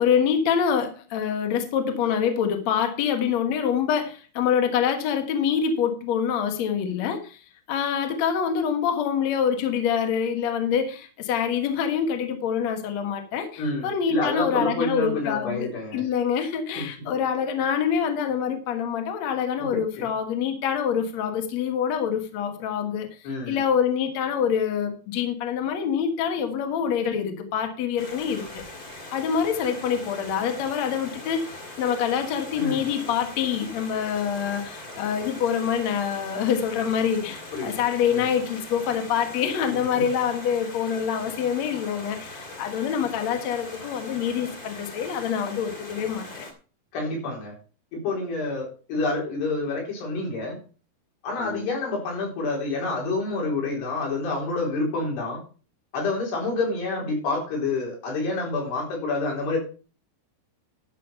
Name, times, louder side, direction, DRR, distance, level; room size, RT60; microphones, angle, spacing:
voice 1, 0.0-7.4 7.7-23.1 23.5-28.6 29.1-46.5 51.4-51.7, left 7 dB, 55° left, 2.2 m, -26 dB
voice 2, 13.6-16.0 16.8-17.1 19.6-19.7 20.0-20.1 23.2-23.6 32.6-32.9 37.5-38.3 39.7-40.1 46.9-47.6 47.9-50.6 51.2-55.4 55.9-59.6, left 3 dB, 80° left, 6.3 m, -28 dB
Stream, 28.0-46.5, left 2 dB, 30° left, 2.0 m, -41 dB
12.5 x 6.3 x 5.6 m
omnidirectional pair, 4.7 m